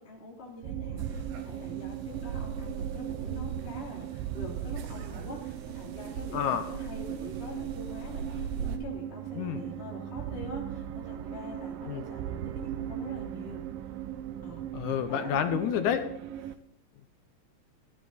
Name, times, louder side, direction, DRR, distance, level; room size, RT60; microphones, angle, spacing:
voice 1, 0.0-13.6 14.4-14.6 15.1-15.4 15.8-16.0, left 1 dB, 20° left, -3 dB, 3.1 m, -45 dB
sound 1, 0.6-16.6, right 11 dB, 85° right, 2.4 m, -38 dB
sound 2, 1.0-8.8, right 6 dB, 70° right, 2.4 m, -40 dB
voice 2, 6.3-6.7 9.4-9.6 11.9-12.0 14.7-16.0, left 9 dB, 70° left, 9 dB, 2.1 m, -29 dB
15.5 x 11.5 x 4.1 m, 0.70 s
omnidirectional pair, 3.9 m